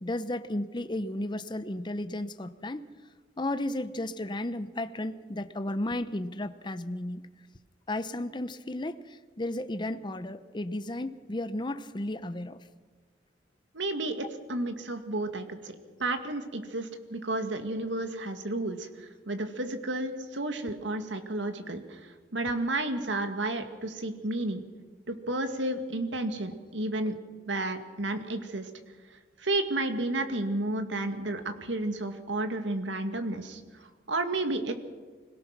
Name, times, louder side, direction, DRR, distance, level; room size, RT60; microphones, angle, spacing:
voice 1, 0.0-2.8 3.4-7.2 7.9-12.6, left 1 dB, 25° left, 11 dB, 0.7 m, -34 dB
voice 2, 13.7-15.7 16.0-22.0 22.3-24.6 25.1-27.2 27.5-28.7 29.4-33.6 34.1-34.7, right 2 dB, 85° right, 7 dB, 2.1 m, -32 dB
25.5 x 17.5 x 6.0 m, 1.5 s
head